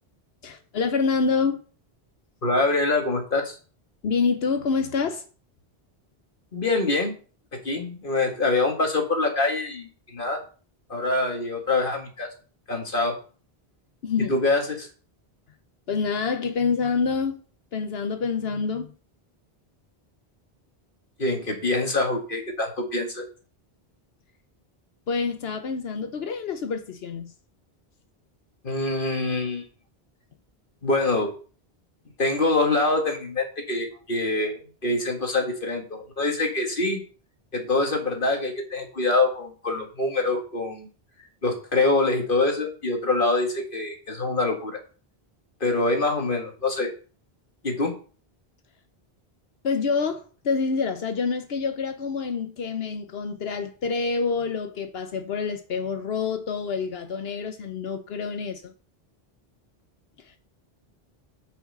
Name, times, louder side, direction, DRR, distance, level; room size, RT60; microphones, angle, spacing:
voice 1, 0.4-1.6 4.0-5.2 14.0-14.3 15.9-17.4 17.7-18.9 25.1-27.3 49.6-58.7 60.2-60.4, left 5 dB, 75° left, 1.1 m, -27 dB
voice 2, 2.4-3.6 6.5-7.2 7.5-10.4 10.9-12.3 12.7-13.2 14.3-14.9 21.2-23.2 28.6-29.6 30.8-31.3 32.2-37.0 37.5-40.9 41.4-44.8 45.6-46.9 47.6-47.9, left 2 dB, 55° left, 2.1 m, -25 dB
8.9 x 5.6 x 6.6 m
omnidirectional pair, 1.0 m